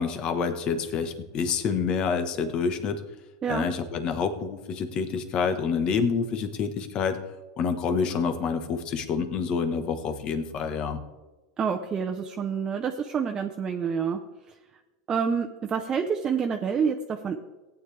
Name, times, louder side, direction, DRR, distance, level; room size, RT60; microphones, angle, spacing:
voice 1, 0.0-3.0 3.5-7.2 7.6-11.0, left 5 dB, 45° left, 8 dB, 1.4 m, -27 dB
voice 2, 11.6-14.2 15.1-17.4, right 6 dB, 30° right, 2 dB, 0.9 m, -27 dB
16.0 x 9.5 x 3.4 m, 1.1 s
hypercardioid pair, 105°, 2 cm